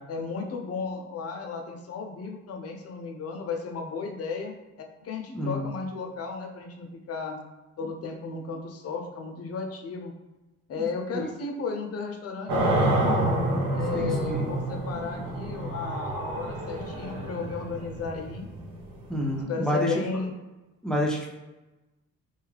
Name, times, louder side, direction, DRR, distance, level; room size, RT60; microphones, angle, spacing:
voice 1, 0.1-4.5 5.0-7.4 7.8-10.1 10.7-13.1 13.7-18.5 19.5-20.3, left 4 dB, 50° left, 3 dB, 0.6 m, -34 dB
voice 2, 5.3-5.7 10.7-10.8 11.1-11.3 13.9-14.5 19.1-19.9 20.8-21.3, left 1 dB, ahead, -2 dB, 0.6 m, -28 dB
sound 1, 12.5-19.4, right 1 dB, 85° right, 0.7 m, -28 dB
2.6 x 2.3 x 3.2 m, 1.1 s
cardioid pair, 90°, 30 cm